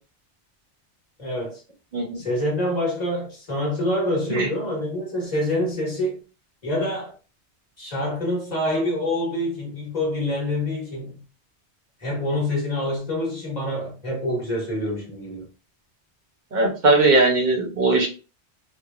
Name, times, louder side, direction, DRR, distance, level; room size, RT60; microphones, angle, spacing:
voice 1, 1.2-1.6 2.1-6.2 6.6-7.1 7.8-11.1 12.0-15.4, left 1 dB, 35° left, 1.2 m, -26 dB
voice 2, 16.5-18.1, right 2 dB, 50° right, 0.7 m, -19 dB
3.2 x 2.1 x 2.3 m
omnidirectional pair, 1.2 m